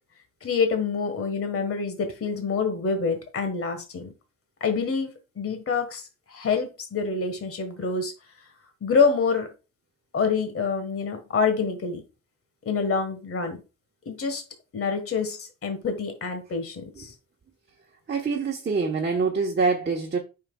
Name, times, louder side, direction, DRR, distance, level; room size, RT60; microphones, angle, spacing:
voice 1, 0.4-4.1 4.6-6.0 6.3-8.1 8.8-9.5 10.1-12.0 12.6-13.6 14.0-14.4 14.7-17.1, left 5 dB, 45° left, 1.6 m, -26 dB
voice 2, 18.1-20.2, right 4 dB, 35° right, 1.2 m, -25 dB
8.7 x 5.9 x 2.3 m
cardioid pair, 95°, 32 cm